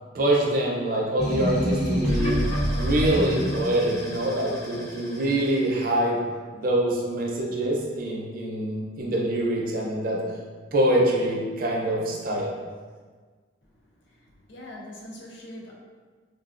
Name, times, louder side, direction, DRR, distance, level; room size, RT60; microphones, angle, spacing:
voice 1, 0.1-6.2 6.5-10.2 10.7-12.5, right 1 dB, 50° right, -2 dB, 0.5 m, -25 dB
sound 1, 1.2-5.5, equal, 35° left, 0.6 m, -27 dB
voice 2, 13.6-15.7, left 1 dB, 85° left, -3 dB, 0.7 m, -43 dB
3.8 x 2.3 x 2.4 m, 1.5 s
head